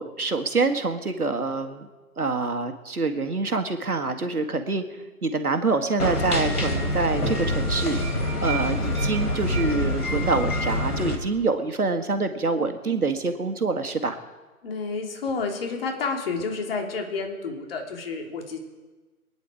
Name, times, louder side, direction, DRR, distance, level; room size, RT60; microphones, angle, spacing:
voice 1, 0.0-1.9 2.2-4.8 5.2-8.0 8.4-14.2, right 3 dB, 80° right, 7 dB, 1.9 m, -26 dB
sound 1, 6.0-11.2, left 1 dB, 80° left, 3.4 m, -26 dB
voice 2, 14.6-18.6, left 4 dB, 40° left, 2 dB, 3.1 m, -30 dB
23.0 x 10.0 x 5.0 m, 1.2 s
figure-of-eight pair, 140°, 44 cm